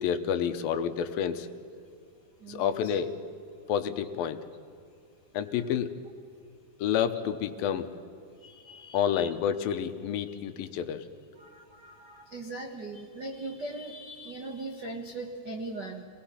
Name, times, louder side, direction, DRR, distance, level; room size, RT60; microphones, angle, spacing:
voice 1, 0.0-1.5 2.5-3.1 3.7-4.4 5.3-5.9 6.8-7.9 8.9-11.1, left 8 dB, 75° left, 8 dB, 2.6 m, -29 dB
voice 2, 2.4-3.0 8.3-9.3 10.3-10.4 11.3-16.0, right 2 dB, 65° right, 2 dB, 1.0 m, -40 dB
26.5 x 19.5 x 5.8 m, 2.3 s
omnidirectional pair, 4.4 m